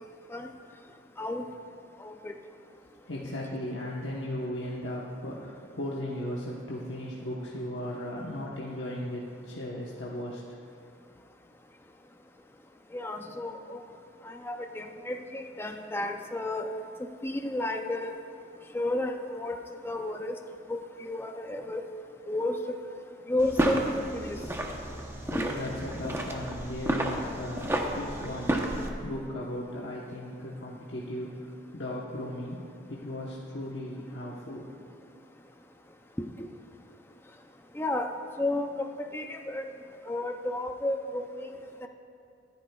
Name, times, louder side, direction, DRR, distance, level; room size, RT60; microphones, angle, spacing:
voice 1, 2.0-2.3 12.9-13.8 14.2-16.7 17.2-18.1 18.7-19.6 19.8-20.4 20.7-21.8 22.3-22.6 23.3-24.5 25.4-25.5 36.2-36.5 37.7-38.1 38.4-39.6 40.0-41.9, left 1 dB, 15° left, 4 dB, 0.5 m, -32 dB
voice 2, 3.1-10.4 25.2-31.5 31.7-34.7, left 1 dB, 80° left, -4 dB, 1.1 m, -37 dB
sound 1, 23.4-28.9, right 1 dB, 15° right, 0.9 m, -31 dB
25.0 x 10.0 x 2.4 m, 2.4 s
head